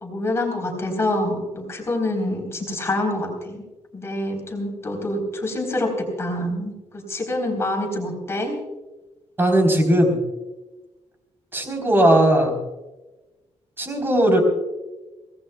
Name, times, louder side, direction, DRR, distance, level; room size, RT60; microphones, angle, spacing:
voice 1, 0.0-3.6 3.9-8.6, left 1 dB, 20° left, 2 dB, 3.7 m, -26 dB
voice 2, 9.4-10.2 11.5-12.6 13.8-14.4, right 1 dB, 20° right, 3 dB, 3.7 m, -18 dB
24.0 x 18.0 x 2.3 m, 1.1 s
wide cardioid pair, 175°, 12 cm